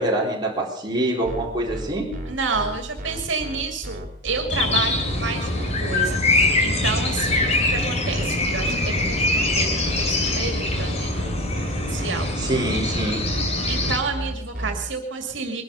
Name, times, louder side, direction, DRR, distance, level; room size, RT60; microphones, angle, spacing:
voice 1, 0.0-2.1 12.4-13.3, right 1 dB, 25° right, -2 dB, 4.0 m, -25 dB
sound 1, 1.2-14.8, right 1 dB, 50° right, 3.7 m, -33 dB
voice 2, 2.3-11.1 11.7-12.3 13.7-15.6, right 4 dB, 80° right, 4 dB, 2.2 m, -30 dB
sound 2, 4.5-14.0, left 2 dB, 35° left, 2.7 m, -23 dB
21.5 x 11.5 x 5.5 m, 0.72 s
head